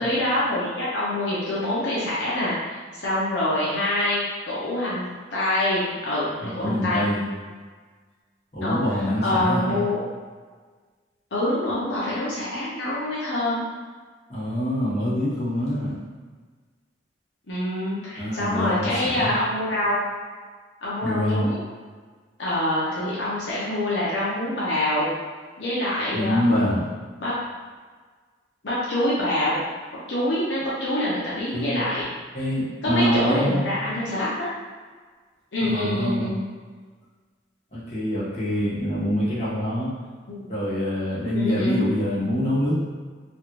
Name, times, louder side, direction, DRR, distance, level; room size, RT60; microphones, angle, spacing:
voice 1, 0.0-7.0 8.6-8.8 9.2-10.0 11.3-13.7 17.5-20.1 20.8-21.6 22.4-25.1 25.6-26.4 27.2-27.3 28.6-29.6 30.1-32.0 32.8-34.5 35.5-36.4 40.3-40.5 41.3-41.9, left 1 dB, 70° left, -9 dB, 0.7 m, -25 dB
voice 2, 6.4-7.3 8.5-9.8 14.3-16.0 18.2-19.4 21.0-21.5 26.1-26.9 31.5-31.8 32.3-33.6 35.6-36.3 37.7-39.9 40.5-42.7, equal, 35° left, -10 dB, 1.2 m, -25 dB
3.2 x 2.4 x 3.0 m, 1.5 s
head